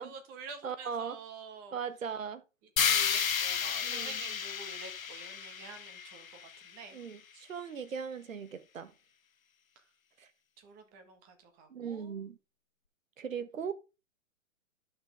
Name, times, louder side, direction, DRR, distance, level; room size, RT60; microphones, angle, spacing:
voice 1, 0.0-1.8 2.9-7.0 9.8-9.9 10.6-12.2, right 5 dB, 20° right, 1.7 m, -49 dB
voice 2, 0.6-1.2 1.7-2.4 3.8-4.2 6.9-8.9 10.2-10.3 11.7-12.4 13.2-13.7, right 7 dB, 70° right, 1.5 m, -38 dB
sound 1, 2.8-6.8, left 7 dB, 80° left, 1.0 m, -32 dB
11.0 x 6.4 x 3.7 m
hypercardioid pair, 140°, 41 cm